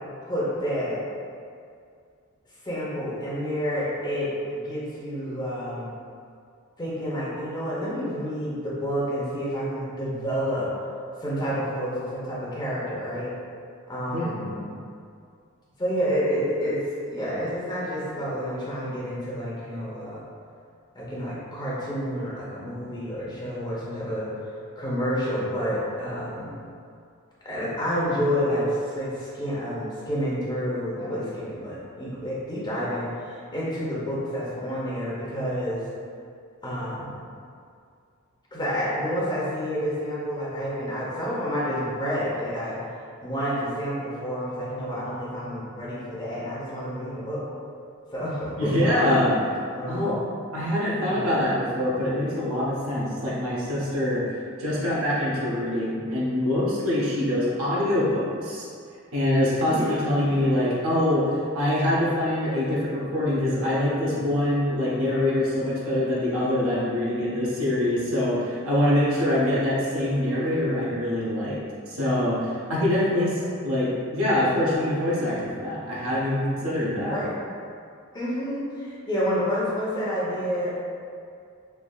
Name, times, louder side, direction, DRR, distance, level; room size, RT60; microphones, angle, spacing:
voice 1, 0.3-1.0 2.6-5.9 6.8-10.7 11.2-13.3 13.9-14.5 15.8-16.8 17.1-20.2 20.9-24.3 24.8-26.5 27.4-35.8 36.6-37.2 38.5-42.8 43.2-47.4 48.1-49.0 49.7-50.1 51.0-51.3 59.7-60.9 73.4-73.6 77.1-77.3 78.1-80.7, equal, 20° left, -8 dB, 0.7 m, -29 dB
voice 2, 14.1-14.7 48.6-49.3 49.9-50.2 50.5-58.7 59.1-71.6 71.9-77.2, left 1 dB, 65° right, -7 dB, 0.7 m, -24 dB
3.3 x 2.6 x 2.3 m, 2.3 s
head